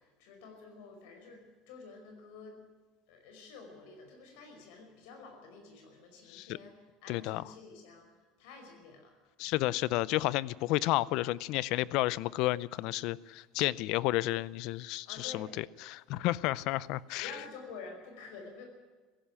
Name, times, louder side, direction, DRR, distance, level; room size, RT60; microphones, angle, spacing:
voice 1, 0.0-2.6 3.1-8.1 8.4-9.1 15.1-15.5 17.1-18.6, left 4 dB, 70° left, 3 dB, 5.2 m, -49 dB
voice 2, 7.1-7.4 9.4-17.3, left 17 dB, 55° left, 21 dB, 0.6 m, -31 dB
17.0 x 15.5 x 9.9 m, 1.4 s
cardioid pair, 170°, 0 cm